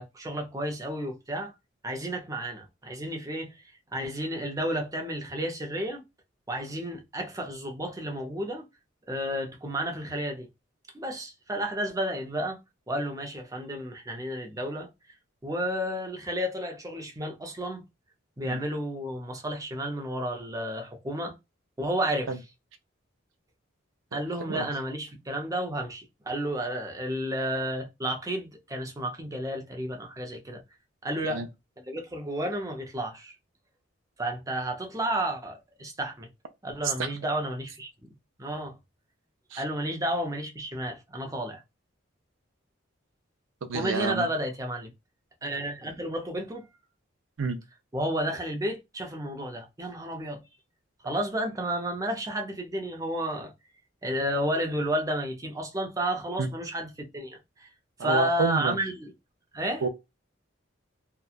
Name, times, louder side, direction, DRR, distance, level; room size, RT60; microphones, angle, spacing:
voice 1, 0.0-1.5 1.8-3.6 3.9-6.0 6.5-8.6 9.1-10.5 10.9-12.6 12.9-14.9 15.4-17.8 18.4-21.3 21.8-22.3 24.1-30.6 31.0-31.4 31.8-33.3 34.2-36.3 36.6-38.1 38.4-38.8 39.6-41.6 43.7-44.9 45.4-46.7 47.9-50.4 51.0-53.5 54.0-57.7 58.0-59.1 59.5-59.8, right 1 dB, 15° right, 0.6 m, -31 dB
voice 2, 43.7-44.3 47.4-47.6 56.4-56.5 58.0-58.8 59.8-59.9, right 4 dB, 80° right, 0.5 m, -28 dB
2.8 x 2.3 x 2.3 m
head